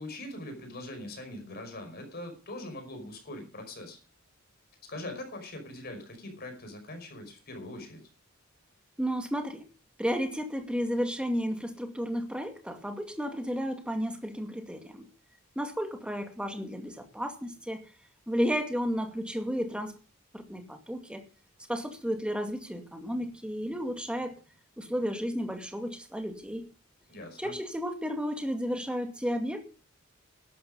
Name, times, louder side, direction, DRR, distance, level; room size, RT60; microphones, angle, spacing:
voice 1, 0.0-4.0 4.9-8.1 27.1-27.6, left 1 dB, 50° left, 5 dB, 5.2 m, -42 dB
voice 2, 9.0-9.6 10.0-15.1 15.6-17.8 18.3-20.0 20.3-21.2 21.7-24.4 24.8-26.7 27.4-29.6, equal, 5° right, 5 dB, 2.2 m, -32 dB
13.0 x 12.0 x 5.4 m, 0.35 s
head